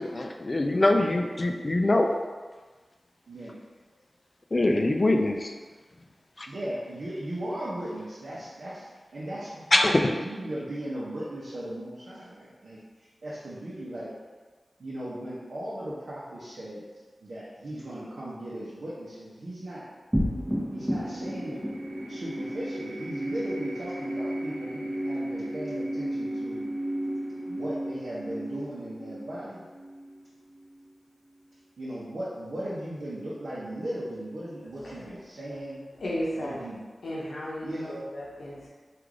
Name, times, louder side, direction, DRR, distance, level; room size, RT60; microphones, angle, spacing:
voice 1, 0.0-2.1 4.5-5.5 6.4-6.5 9.7-10.1, left 2 dB, 40° left, 4 dB, 0.3 m, -23 dB
voice 2, 3.3-3.6 6.5-14.1 14.8-16.8 17.2-19.9 20.7-21.6 22.1-26.6 27.5-29.6 31.8-35.8 36.4-36.8 37.6-38.0, right 1 dB, 75° right, -8 dB, 0.7 m, -37 dB
sound 1, 20.1-30.8, equal, 10° right, 0.8 m, -33 dB
voice 3, 34.8-35.2 35.4-35.6 35.9-36.6 37.0-38.7, equal, 85° left, -6 dB, 0.7 m, -35 dB
3.2 x 2.4 x 3.6 m, 1.4 s
wide cardioid pair, 65°, 0 cm